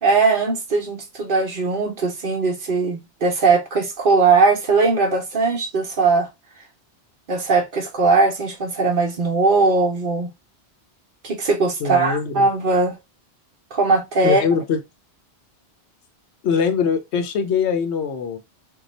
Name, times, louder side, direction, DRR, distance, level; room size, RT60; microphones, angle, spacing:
voice 1, 0.0-6.3 7.3-10.3 11.2-13.0 13.7-14.4, right 3 dB, 55° right, 0.9 m, -19 dB
voice 2, 11.8-12.5 14.2-14.8 16.4-18.4, left 6 dB, 80° left, 0.9 m, -22 dB
2.7 x 2.3 x 3.9 m
omnidirectional pair, 1.2 m